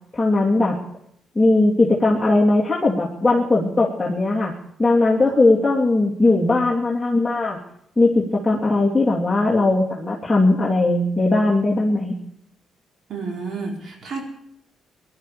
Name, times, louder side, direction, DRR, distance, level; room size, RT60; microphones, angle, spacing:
voice 1, 0.1-0.8 1.3-4.5 4.8-7.6 8.0-12.2, left 2 dB, 5° left, -5 dB, 2.9 m, -19 dB
voice 2, 13.1-14.2, right 4 dB, 60° right, 2 dB, 4.6 m, -30 dB
19.5 x 12.0 x 5.0 m, 0.71 s
cardioid pair, 90°, 0 cm